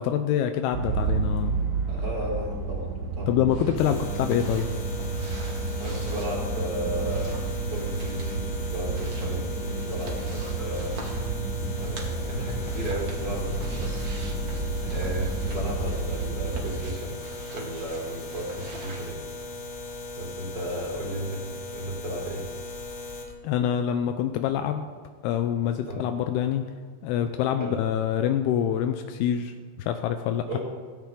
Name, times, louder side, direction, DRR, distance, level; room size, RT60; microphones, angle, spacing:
voice 1, 0.0-1.6 3.3-4.7 23.4-24.9 25.2-26.7 27.0-30.5, left 9 dB, 85° left, 7 dB, 2.3 m, -26 dB
sound 1, 0.7-16.7, right 3 dB, 85° right, 4.4 m, -31 dB
voice 2, 1.9-3.3 5.8-7.3 7.7-10.3 10.6-10.9 11.8-14.1 14.7-19.2 20.1-21.4 21.7-22.5 25.8-26.0 27.6-27.8 30.5-30.6, right 1 dB, 25° right, -1 dB, 4.1 m, -34 dB
sound 2, 3.5-19.1, right 3 dB, 45° right, 2.4 m, -45 dB
sound 3, 3.8-23.3, left 2 dB, 55° left, 3.0 m, -38 dB
16.5 x 16.5 x 3.8 m, 1.5 s
omnidirectional pair, 5.2 m